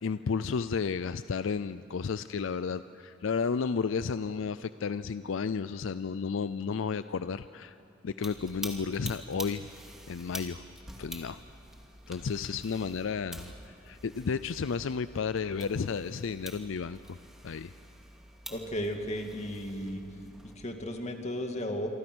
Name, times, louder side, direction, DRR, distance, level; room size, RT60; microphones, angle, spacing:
voice 1, 0.0-7.8 8.0-9.7 10.1-10.6 11.0-11.4 12.1-17.2 17.4-17.7, left 5 dB, 75° left, 14 dB, 0.4 m, -32 dB
sound 1, 8.2-20.6, equal, ahead, 2.4 m, -47 dB
voice 2, 18.5-20.0 20.6-21.9, equal, 35° left, 4 dB, 2.2 m, -34 dB
27.0 x 25.0 x 6.2 m, 2.7 s
head